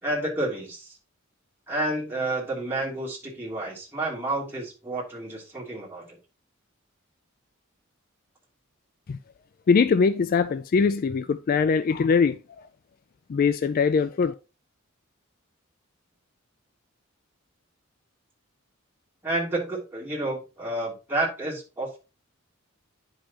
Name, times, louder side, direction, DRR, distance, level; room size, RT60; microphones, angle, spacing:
voice 1, 0.0-0.9 1.7-6.2 19.2-22.0, right 2 dB, 10° right, 3.0 m, -30 dB
voice 2, 9.7-12.4 13.3-14.3, left 5 dB, 45° left, 0.3 m, -22 dB
10.0 x 5.4 x 2.9 m
head